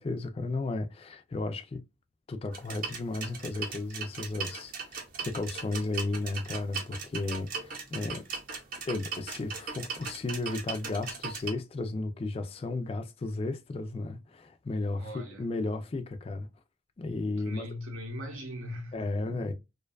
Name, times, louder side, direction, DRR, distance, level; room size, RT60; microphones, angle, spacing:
voice 1, 0.0-1.8 2.3-8.3 8.8-16.5 17.0-17.7 18.9-19.5, left 2 dB, 30° left, 0.3 m, -34 dB
sound 1, 2.5-11.5, right 5 dB, 45° right, 0.7 m, -39 dB
voice 2, 15.0-15.5 17.4-19.5, left 1 dB, 85° right, 0.7 m, -40 dB
2.5 x 2.2 x 2.2 m
head